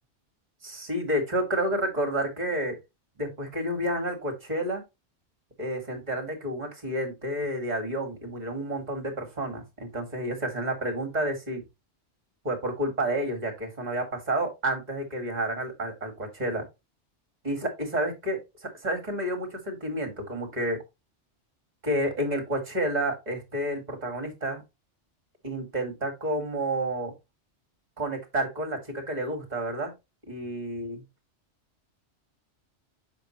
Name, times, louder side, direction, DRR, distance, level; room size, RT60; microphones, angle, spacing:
voice 1, 0.6-2.8 3.2-4.8 5.6-11.6 12.4-16.6 17.4-20.8 21.8-24.6 25.4-27.1 28.0-29.9 30.3-31.0, right 1 dB, 35° right, 5 dB, 2.1 m, -30 dB
7.4 x 5.1 x 3.1 m, 0.23 s
omnidirectional pair, 1.2 m